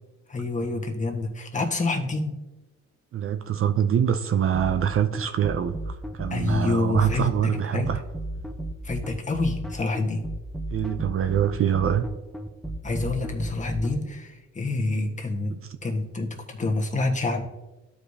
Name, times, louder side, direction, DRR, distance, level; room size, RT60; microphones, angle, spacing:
voice 1, 0.3-2.3 6.3-7.9 8.8-10.3 12.8-17.4, left 2 dB, 25° left, 1.4 m, -27 dB
voice 2, 3.1-8.0 10.7-12.1 15.5-15.6, right 9 dB, 45° right, 0.5 m, -25 dB
sound 1, 4.5-14.0, right 1 dB, ahead, 0.6 m, -33 dB
12.5 x 4.9 x 2.7 m
cardioid pair, 90°, 30 cm